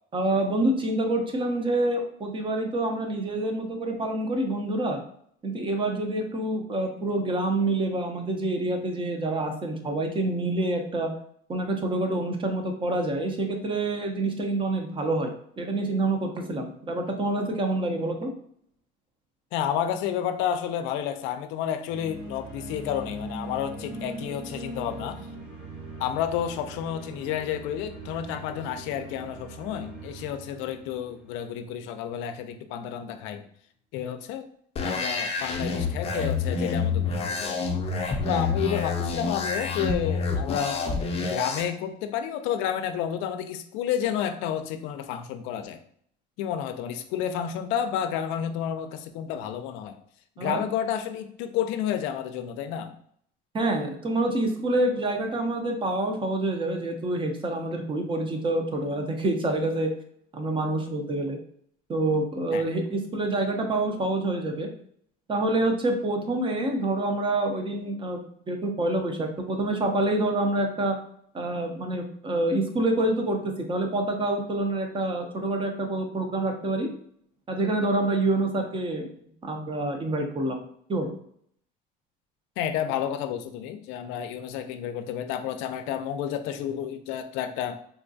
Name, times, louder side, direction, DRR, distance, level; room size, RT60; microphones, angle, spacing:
voice 1, 0.1-5.0 5.4-11.1 11.5-18.3 50.4-50.6 53.5-59.9 60.3-61.4 61.9-64.7 65.3-68.2 68.5-71.0 71.3-76.9 77.5-79.1 79.4-80.6 80.9-81.1, right 2 dB, 25° right, 3 dB, 0.6 m, -27 dB
voice 2, 19.5-25.2 26.0-33.5 33.9-34.5 34.8-37.8 38.2-40.9 41.3-45.8 46.4-50.0 50.4-53.0 62.5-62.7 82.6-87.8, left 9 dB, 80° left, 8 dB, 0.4 m, -30 dB
sound 1, 21.8-31.9, right 2 dB, 80° right, 1.3 m, -41 dB
sound 2, 34.8-41.6, left 4 dB, 30° left, 0.6 m, -28 dB
3.6 x 2.3 x 2.6 m, 0.64 s
cardioid pair, 120°, 19 cm